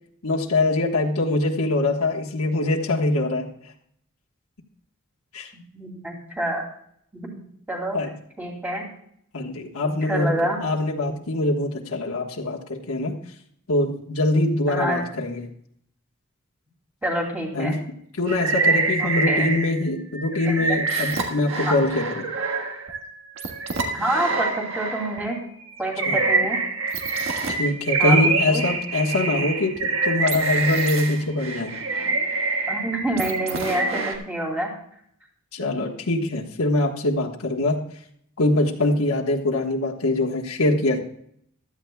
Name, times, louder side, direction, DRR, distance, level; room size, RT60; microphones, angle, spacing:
voice 1, 0.2-3.5 5.3-5.5 7.9-8.1 9.3-10.3 10.6-13.2 13.7-15.5 17.5-17.8 18.2-22.3 26.1-26.2 27.5-31.8 35.5-37.9 38.4-41.0, left 2 dB, 85° left, 0 dB, 1.4 m, -23 dB
voice 2, 5.7-6.6 7.1-8.0 8.4-8.8 10.0-10.6 14.7-15.1 17.0-17.8 19.0-19.5 20.5-20.8 21.7-21.8 23.9-25.4 25.8-26.6 28.0-28.6 32.7-34.7, right 1 dB, 10° right, -1 dB, 2.7 m, -27 dB
sound 1, 18.3-19.8 20.1-25.3 25.8-34.2, right 3 dB, 65° right, 1.5 m, -25 dB
16.0 x 12.5 x 2.3 m, 0.68 s
head